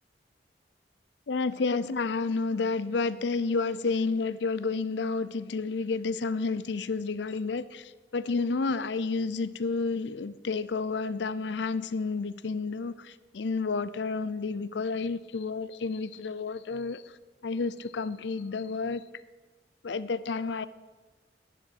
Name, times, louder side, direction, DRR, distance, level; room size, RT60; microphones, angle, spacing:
voice 1, 1.3-17.2 17.4-19.0 19.8-20.7, left 4 dB, 80° left, 0.5 m, -30 dB
10.5 x 7.7 x 8.1 m
head